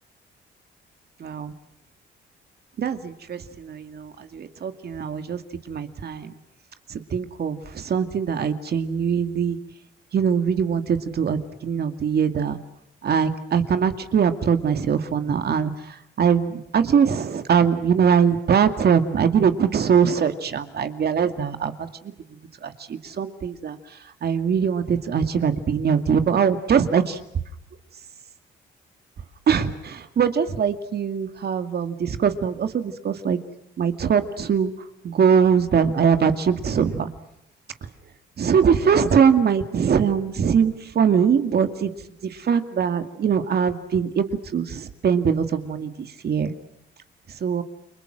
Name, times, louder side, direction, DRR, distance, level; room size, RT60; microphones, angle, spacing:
voice 1, 1.2-1.5 2.8-5.4 5.7-6.3 6.9-9.6 10.1-12.6 13.0-22.1 22.6-23.8 24.2-27.2 29.5-33.4 33.8-34.7 35.0-37.1 38.4-41.9 42.2-44.3 44.5-46.5 47.4-47.6, right 7 dB, 55° right, 9 dB, 2.3 m, -22 dB
29.5 x 23.5 x 6.2 m, 0.76 s
cardioid pair, 90°, 20 cm